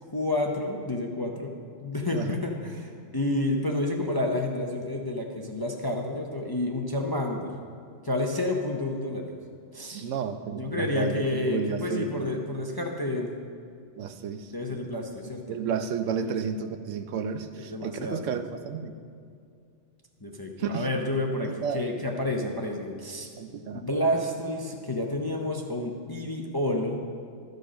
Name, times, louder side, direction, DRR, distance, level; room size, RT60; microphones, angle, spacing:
voice 1, 0.1-1.5 1.8-7.5 8.0-9.4 9.7-10.0 10.6-13.3 14.5-15.6 16.2-16.4 17.6-18.4 20.2-23.3 23.7-27.1, left 1 dB, 25° left, 1 dB, 0.5 m, -30 dB
voice 2, 9.9-12.3 14.0-14.8 15.5-18.9 20.6-20.9 21.4-21.8 23.4-23.8, right 6 dB, 75° right, 9 dB, 1.0 m, -32 dB
13.0 x 6.6 x 5.1 m, 2.3 s
omnidirectional pair, 1.3 m